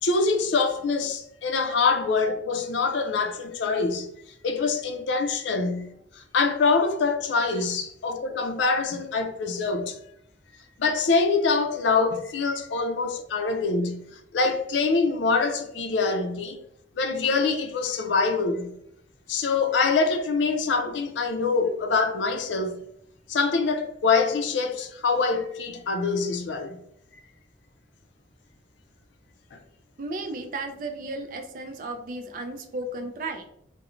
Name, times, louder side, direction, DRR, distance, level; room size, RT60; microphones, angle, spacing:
voice 1, 0.0-4.1 4.4-10.0 10.8-14.1 14.3-16.6 17.0-18.8 19.3-22.8 23.3-26.8 29.5-29.6, left 4 dB, 85° left, 0.4 m, -25 dB
voice 2, 30.0-33.5, right 2 dB, 45° right, 0.3 m, -35 dB
2.5 x 2.0 x 3.0 m
head